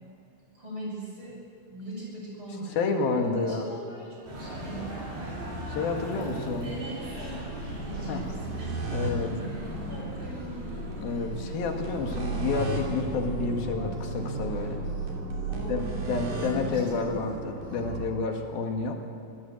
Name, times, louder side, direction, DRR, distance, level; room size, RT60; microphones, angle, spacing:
voice 1, 0.5-1.4 1.7-5.2 6.1-7.4 7.8-9.4 9.9-10.7 11.1-11.3 15.5-16.1 16.4-17.2, right 1 dB, 35° right, -3 dB, 7.6 m, -41 dB
voice 2, 2.8-3.7 5.7-6.7 8.1-8.2 8.9-9.3 11.0-14.8 15.7-19.0, left 4 dB, 85° left, 3 dB, 3.7 m, -29 dB
sound 1, 4.3-14.7, right 1 dB, 85° right, 8.5 m, -40 dB
sound 2, 5.4-18.1, right 2 dB, 65° right, 4.6 m, -35 dB
25.0 x 17.0 x 8.1 m, 2.5 s
omnidirectional pair, 4.1 m